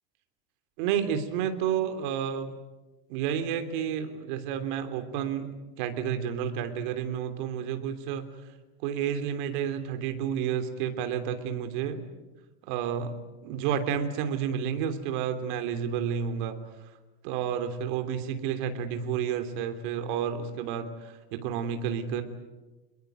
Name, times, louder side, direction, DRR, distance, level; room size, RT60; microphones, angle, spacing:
voice 1, 0.8-2.5 3.1-5.5 5.8-8.2 8.8-12.0 12.7-13.1 13.4-16.7 17.2-22.2, right 8 dB, 55° right, 8 dB, 3.2 m, -30 dB
27.0 x 21.5 x 9.4 m, 1.1 s
supercardioid pair, 170°, 30 cm